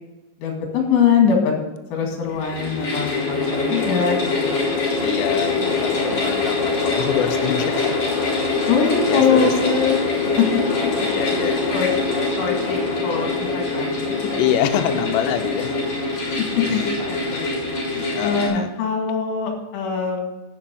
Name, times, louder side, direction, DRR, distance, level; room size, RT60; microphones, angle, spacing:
voice 1, 0.4-1.5 1.9-4.8 5.7-6.0 8.7-10.0 11.0-11.1 11.7-13.9 16.7-17.6 18.2-20.3, left 6 dB, 70° left, 1 dB, 4.3 m, -22 dB
sound 1, 2.2-18.5, left 3 dB, 35° left, 5.0 m, -23 dB
voice 2, 5.0-8.0 8.6-8.7 9.1-9.8 11.1-11.6 14.4-15.7 17.9-18.7, left 11 dB, 90° left, 7 dB, 2.5 m, -26 dB
11.5 x 6.1 x 6.2 m, 1.0 s
omnidirectional pair, 5.7 m